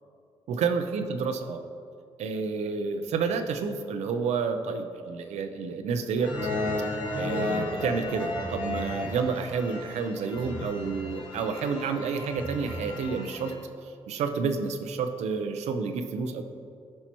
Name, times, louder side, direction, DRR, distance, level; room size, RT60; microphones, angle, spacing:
voice 1, 0.5-1.6 2.2-6.3 7.1-13.5 14.1-16.4, right 5 dB, 85° right, 6 dB, 0.6 m, -29 dB
sound 1, 6.2-13.5, left 2 dB, 40° left, 1.7 m, -34 dB
sound 2, 6.4-6.9 8.2-8.9 10.4-10.9 12.2-12.9, right 1 dB, 25° right, 1.2 m, -40 dB
14.0 x 5.6 x 3.0 m, 2.4 s
cardioid pair, 140°, 11 cm